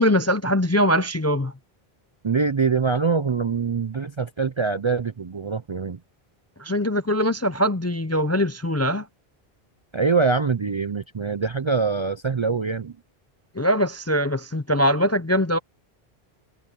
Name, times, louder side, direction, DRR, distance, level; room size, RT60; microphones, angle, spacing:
voice 1, 0.0-1.5 6.6-9.1 13.6-15.6, equal, 20° left, 0.4 m, -22 dB
voice 2, 2.2-6.0 9.9-12.9, right 5 dB, 40° right, 0.4 m, -24 dB
omnidirectional pair, 1.1 m